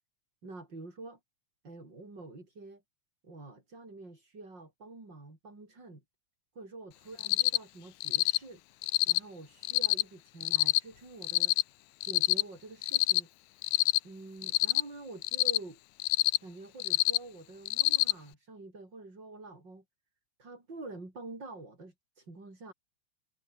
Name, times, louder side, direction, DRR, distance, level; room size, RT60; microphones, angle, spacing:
voice 1, 0.4-1.2 1.6-2.8 3.2-6.0 6.6-8.6 9.1-11.5 12.0-13.3 14.0-15.8 16.4-19.8 20.4-22.7, right 2 dB, 35° right, 7.1 m, -47 dB
Cricket, 7.2-7.6 8.0-8.4 8.8-9.2 9.6-10.0 10.4-10.8 11.2-11.6 12.0-12.4 12.8-13.2 13.6-14.0 14.4-14.8 15.2-15.6 16.0-16.4 16.8-17.2 17.7-18.1, left 20 dB, 90° left, 2.0 m, -26 dB
omnidirectional pair, 3.3 m